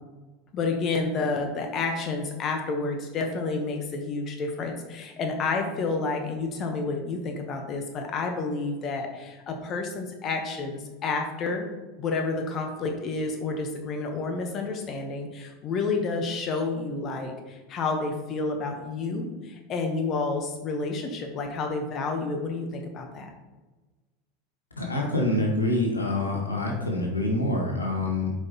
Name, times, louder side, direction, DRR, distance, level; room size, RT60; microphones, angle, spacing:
voice 1, 0.5-11.7 12.0-23.3, left 3 dB, 40° left, 4 dB, 1.0 m, -30 dB
voice 2, 24.8-28.3, left 2 dB, 90° left, 0 dB, 1.4 m, -26 dB
7.9 x 5.3 x 2.9 m, 1.2 s
figure-of-eight pair, 85°, 0 cm